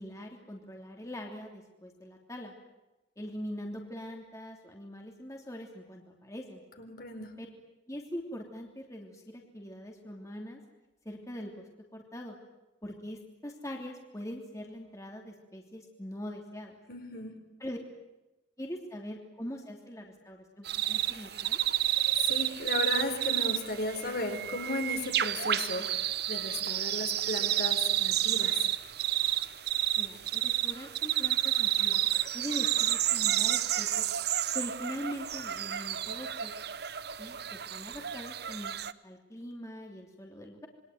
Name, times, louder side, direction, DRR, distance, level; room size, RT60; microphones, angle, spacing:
voice 1, 0.0-2.5 3.2-6.6 7.4-7.5 7.9-10.6 11.0-11.6 11.9-12.4 12.8-16.8 17.6-17.8 18.6-21.6 30.0-32.1 32.3-34.0 34.5-36.5 37.2-38.7 39.0-40.7, equal, 15° left, 1 dB, 3.1 m, -42 dB
voice 2, 6.8-7.3 16.9-17.4 22.2-28.7, left 2 dB, 55° left, 5 dB, 4.6 m, -35 dB
sound 1, 20.6-38.9, right 12 dB, 60° right, 0.9 m, -30 dB
27.5 x 23.0 x 9.4 m, 1.0 s
head